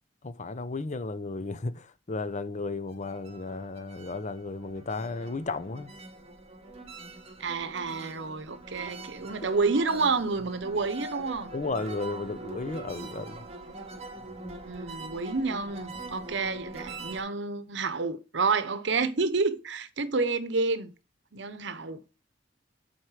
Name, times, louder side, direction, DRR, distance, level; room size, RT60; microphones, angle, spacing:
voice 1, 0.2-5.9 11.5-13.4, left 3 dB, 40° left, 0.7 m, -34 dB
sound 1, 2.8-17.2, right 3 dB, 35° right, 2.0 m, -43 dB
voice 2, 7.4-11.5 14.6-20.9 21.3-22.0, right 4 dB, 70° right, 0.9 m, -29 dB
7.8 x 4.4 x 4.9 m
head